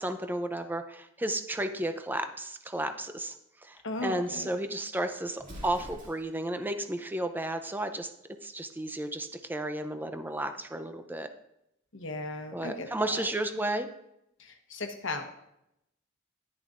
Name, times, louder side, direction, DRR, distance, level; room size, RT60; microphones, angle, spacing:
voice 1, 0.0-3.3 3.6-3.8 4.0-8.1 8.4-11.3 12.5-13.9, right 1 dB, 10° right, 8 dB, 0.6 m, -33 dB
voice 2, 3.8-4.5 11.9-13.3 14.4-15.2, left 2 dB, 65° left, 5 dB, 1.1 m, -36 dB
Explosion, 5.4-6.5, equal, 40° right, 2.3 m, -45 dB
10.5 x 10.0 x 2.5 m, 0.82 s
head